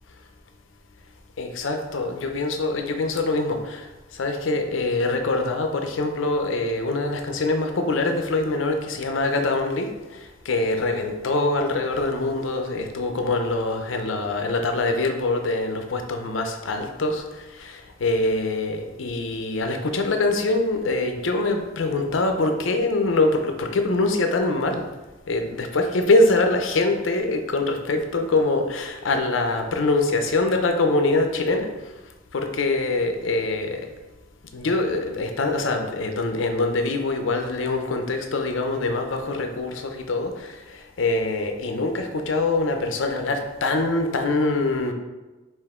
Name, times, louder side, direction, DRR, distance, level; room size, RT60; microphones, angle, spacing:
voice 1, 1.4-24.8 25.3-31.7 32.3-33.8 34.5-44.9, left 2 dB, 80° left, 5 dB, 0.6 m, -24 dB
5.5 x 2.6 x 3.6 m, 1.2 s
head